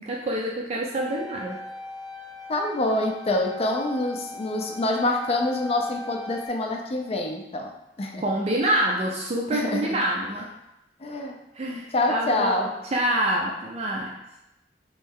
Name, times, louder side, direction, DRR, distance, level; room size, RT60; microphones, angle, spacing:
voice 1, 0.0-1.6 3.3-3.4 8.2-10.5 11.5-14.2, right 1 dB, 35° right, -2 dB, 0.4 m, -27 dB
sound 1, 1.0-6.5, left 1 dB, 5° right, 0.8 m, -39 dB
voice 2, 2.5-7.7 8.0-8.2 9.5-10.0 11.0-11.4 11.9-12.7, left 2 dB, 35° left, 2 dB, 0.4 m, -26 dB
3.1 x 2.6 x 3.5 m, 0.89 s
head